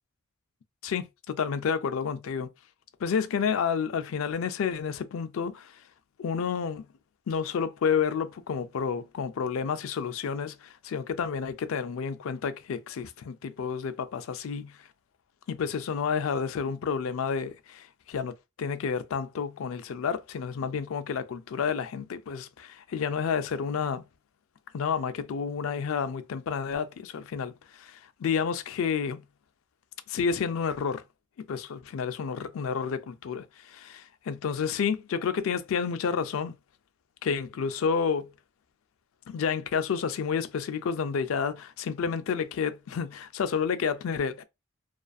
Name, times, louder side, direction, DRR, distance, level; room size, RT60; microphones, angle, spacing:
voice 1, 0.8-2.5 3.0-5.8 6.2-6.9 7.3-14.8 15.5-24.0 24.7-29.2 30.1-31.0 31.5-36.5 37.2-38.3 39.3-44.4, left 6 dB, 70° left, 0.3 m, -30 dB
2.5 x 2.4 x 2.3 m
head